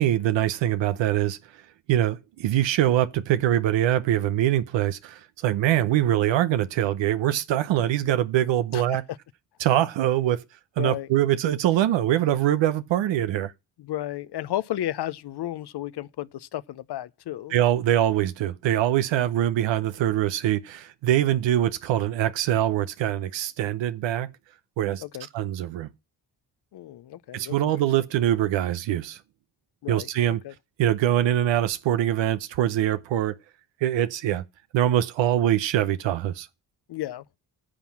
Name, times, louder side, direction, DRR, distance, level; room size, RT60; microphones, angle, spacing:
voice 1, 0.0-1.6 1.9-9.0 9.6-10.5 10.8-13.5 17.5-24.3 24.8-25.0 25.3-25.9 27.3-29.2 29.9-30.4 30.8-33.3 33.8-34.4 34.7-36.5, right 12 dB, 90° right, 0.8 m, -23 dB
voice 2, 10.8-11.1 13.8-17.5 19.2-19.3 25.0-25.3 26.7-27.5 29.8-30.1 30.4-30.5 36.9-37.2, left 13 dB, 65° left, 0.6 m, -33 dB
10.0 x 5.8 x 7.2 m
cardioid pair, 65°, 43 cm